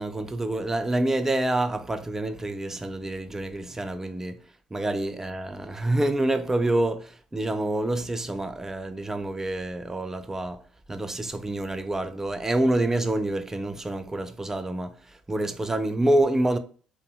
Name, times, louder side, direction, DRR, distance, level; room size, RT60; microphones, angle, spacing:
voice 1, 0.0-4.4 4.7-10.6 10.9-16.6, right 1 dB, 15° right, 0.4 m, -27 dB
2.6 x 2.1 x 2.8 m
supercardioid pair, 75°, 3 cm